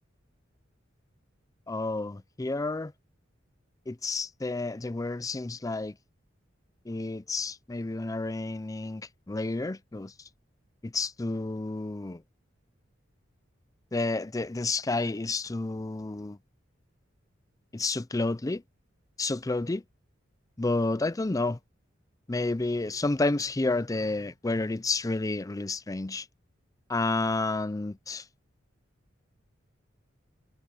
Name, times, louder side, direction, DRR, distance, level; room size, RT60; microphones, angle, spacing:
voice 1, 1.7-2.9 3.9-6.0 6.9-10.1 10.8-12.2 13.9-16.4 17.7-18.6 19.2-19.8 20.6-21.6 22.3-26.3 26.9-28.2, left 2 dB, 20° left, 0.5 m, -30 dB
head